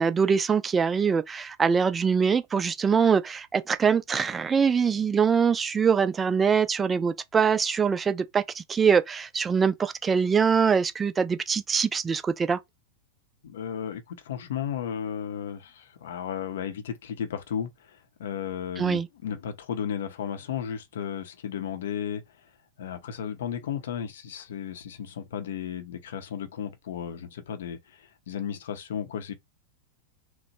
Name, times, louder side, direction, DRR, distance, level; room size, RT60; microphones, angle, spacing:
voice 1, 0.0-12.6 18.8-19.1, right 6 dB, 20° right, 0.3 m, -23 dB
voice 2, 13.4-22.5 22.8-29.3, left 8 dB, 60° left, 0.5 m, -34 dB
2.9 x 2.0 x 2.8 m
figure-of-eight pair, 90°, 0 cm